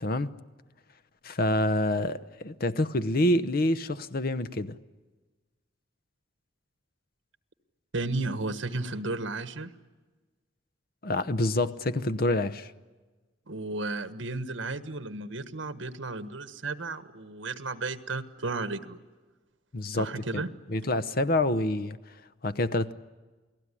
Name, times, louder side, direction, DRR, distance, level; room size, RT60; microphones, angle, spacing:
voice 1, 1.2-4.8 11.0-12.7 19.7-20.4 20.7-22.0 22.4-22.9, left 1 dB, 50° left, 0.9 m, -27 dB
voice 2, 7.9-9.7 13.5-19.0 19.9-20.5, right 3 dB, 80° right, 1.4 m, -33 dB
29.0 x 19.0 x 9.9 m
head